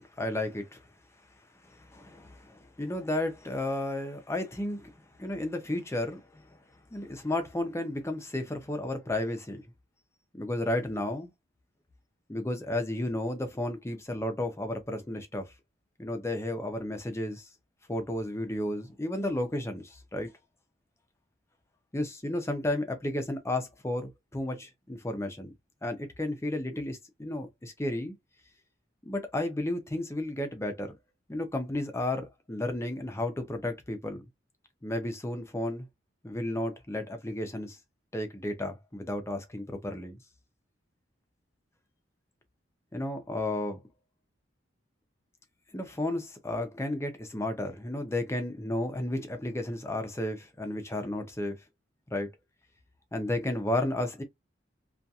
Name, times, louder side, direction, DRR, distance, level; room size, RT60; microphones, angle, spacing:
voice 1, 0.2-0.8 1.6-6.6 6.9-9.6 10.3-11.3 12.3-15.5 16.0-17.5 17.9-20.3 21.9-25.5 25.8-28.1 29.0-30.9 31.3-34.2 34.8-35.9 36.2-37.8 38.1-40.2 42.9-43.8 45.7-51.6 52.1-52.3 53.1-54.2, left 1 dB, 15° left, 0.6 m, -33 dB
2.7 x 2.4 x 2.3 m
head